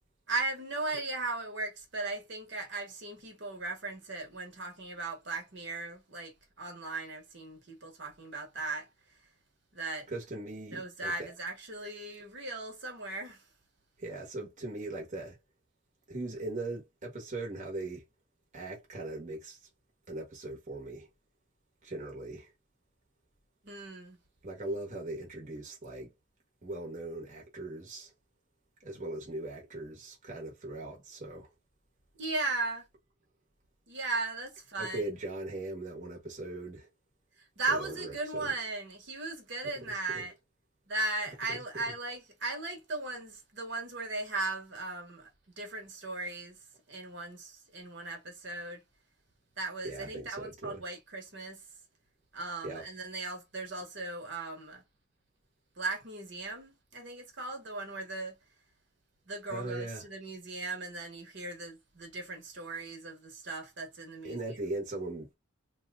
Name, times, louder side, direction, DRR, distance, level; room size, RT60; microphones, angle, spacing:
voice 1, 0.3-8.9 9.7-10.1 10.7-13.4 23.6-24.2 32.2-32.8 33.9-35.1 37.6-40.3 40.9-45.3 45.6-46.6 46.9-48.8 49.6-51.6 52.3-54.8 55.8-58.4 59.3-64.6, right 3 dB, 55° right, 1.1 m, -37 dB
voice 2, 10.1-11.3 14.0-15.4 16.1-18.0 18.5-19.7 20.1-21.1 21.8-22.5 24.4-26.1 26.6-28.1 28.8-31.5 34.8-36.9 37.8-38.5 40.1-40.3 41.5-41.6 49.8-50.8 52.6-52.8 59.5-60.1 64.2-65.3, right 2 dB, 35° right, 1.0 m, -39 dB
2.8 x 2.2 x 3.5 m
head